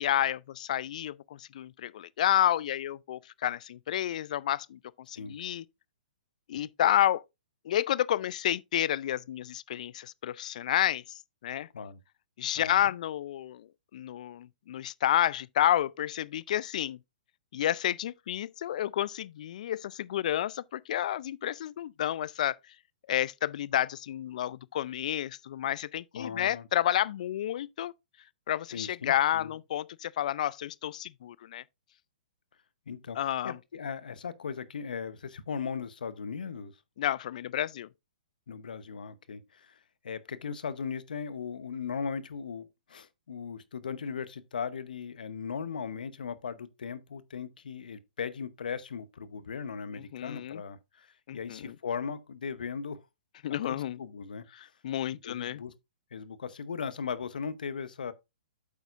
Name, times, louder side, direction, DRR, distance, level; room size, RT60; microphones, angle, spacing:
voice 1, 0.0-4.8 5.1-5.6 6.5-7.2 7.6-11.7 12.4-17.0 17.5-22.8 23.1-27.9 28.5-31.6 33.1-33.6 37.0-37.9 49.9-50.6 51.3-51.8 53.4-54.0 54.5-55.6, left 11 dB, 60° left, 0.4 m, -30 dB
voice 2, 12.6-12.9 26.2-26.7 28.7-29.5 32.9-33.2 33.4-36.7 38.5-39.8 40.0-53.0 53.6-54.4 55.2-55.7 56.1-58.1, left 6 dB, 75° left, 0.9 m, -38 dB
8.5 x 8.1 x 2.5 m
hypercardioid pair, 130°, 5 cm